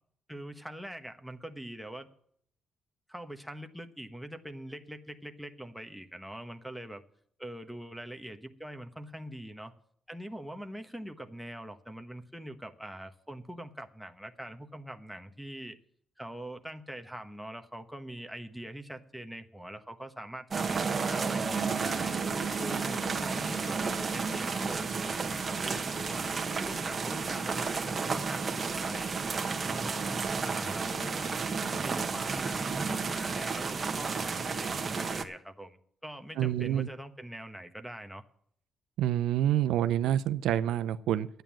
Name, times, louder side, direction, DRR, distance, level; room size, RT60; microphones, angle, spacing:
voice 1, 0.3-2.1 3.1-7.0 7.4-9.7 10.1-15.8 16.2-20.8 21.1-22.2 22.6-26.3 26.6-30.0 30.4-31.3 31.8-38.2, right 1 dB, ahead, 10 dB, 1.2 m, -43 dB
sound 1, 20.5-35.2, right 5 dB, 35° right, 1.2 m, -32 dB
voice 2, 36.4-36.9 39.0-41.3, right 11 dB, 85° right, 11 dB, 0.5 m, -27 dB
11.0 x 9.1 x 7.4 m, 0.66 s
cardioid pair, 90°, 0 cm